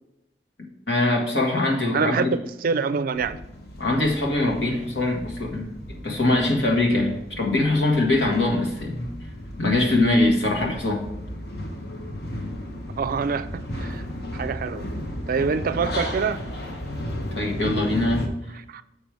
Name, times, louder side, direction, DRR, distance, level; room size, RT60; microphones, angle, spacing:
voice 1, 0.9-2.2 3.8-9.1 9.6-11.0 17.4-18.3, left 2 dB, 85° left, 1.9 m, -22 dB
voice 2, 1.9-3.4 13.0-14.0 14.3-14.9 15.3-16.4 18.7-18.8, right 5 dB, 55° right, 0.4 m, -25 dB
sound 1, 3.1-18.3, left 1 dB, 65° left, 1.2 m, -35 dB
6.8 x 5.3 x 4.7 m
head